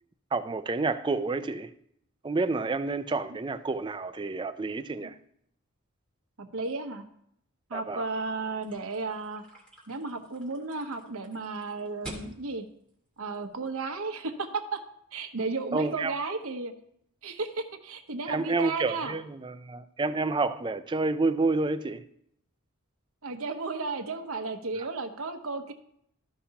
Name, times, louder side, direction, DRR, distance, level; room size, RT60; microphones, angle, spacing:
voice 1, 0.3-1.7 2.2-5.1 7.7-8.0 15.7-16.1 18.3-22.0, right 3 dB, 20° right, 0.4 m, -29 dB
voice 2, 6.4-7.0 7.7-9.4 9.9-12.6 13.2-14.8 15.1-16.7 17.2-19.1 23.2-25.7, right 3 dB, 75° right, 0.9 m, -34 dB
sound 1, 8.6-14.0, right 2 dB, 5° left, 2.1 m, -48 dB
14.0 x 5.6 x 2.9 m
head